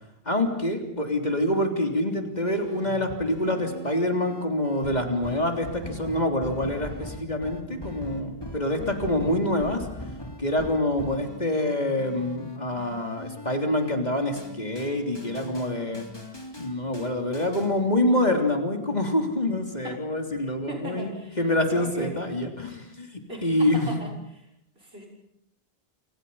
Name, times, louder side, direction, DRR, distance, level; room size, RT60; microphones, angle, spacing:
voice 1, 0.2-9.8 10.4-16.1 16.6-23.9, left 1 dB, 40° left, 4 dB, 3.5 m, -26 dB
sound 1, 2.5-17.7, left 1 dB, 20° left, 3.4 m, -41 dB
voice 2, 8.7-9.2 19.8-19.9 20.7-22.1 23.3-24.5 24.8-25.1, right 1 dB, 70° right, 0 dB, 6.6 m, -39 dB
29.0 x 27.5 x 5.6 m, 0.78 s
omnidirectional pair, 1.1 m